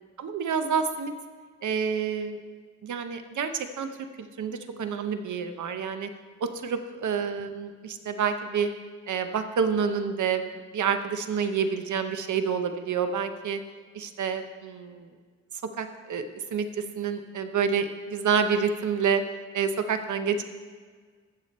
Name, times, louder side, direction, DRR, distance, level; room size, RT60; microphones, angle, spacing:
voice 1, 0.2-1.1 1.6-2.4 2.8-3.9 4.4-6.1 6.6-8.7 9.1-10.4 10.7-13.6 13.9-15.1 15.8-16.3 16.5-19.2 19.5-20.5, right 6 dB, 85° right, 8 dB, 0.8 m, -28 dB
14.0 x 6.9 x 4.2 m, 1.5 s
wide cardioid pair, 140°, 29 cm